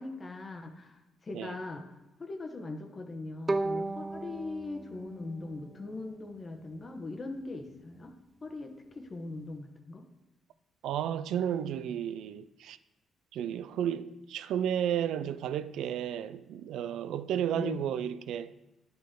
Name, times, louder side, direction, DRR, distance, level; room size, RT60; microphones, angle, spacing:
voice 1, 0.0-8.1 8.4-10.1 17.5-17.9, left 2 dB, 35° left, 1.0 m, -40 dB
Bowed string instrument, 3.5-6.5, right 2 dB, 25° right, 0.5 m, -36 dB
voice 2, 10.8-12.8 13.3-18.5, right 9 dB, 80° right, 0.3 m, -32 dB
10.0 x 5.3 x 3.7 m
cardioid pair, 90°, 0 cm